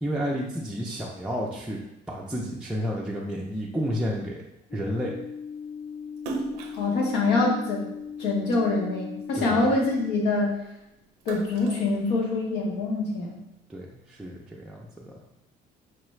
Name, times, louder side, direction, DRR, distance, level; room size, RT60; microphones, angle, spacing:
voice 1, 0.0-1.8 2.1-4.4 4.7-5.1 9.4-9.7 13.7-15.1, equal, 5° right, -4 dB, 0.4 m, -31 dB
sound 1, 4.7-10.1, left 6 dB, 60° left, 0.6 m, -38 dB
Splash splatter, 6.2-8.7 9.2-10.6 11.0-12.7, right 3 dB, 85° right, 0.5 m, -38 dB
voice 2, 6.7-7.9 8.2-10.6 11.2-13.4, left 3 dB, 80° left, -1 dB, 1.0 m, -25 dB
4.8 x 2.3 x 3.1 m, 0.87 s
cardioid pair, 110°, 17 cm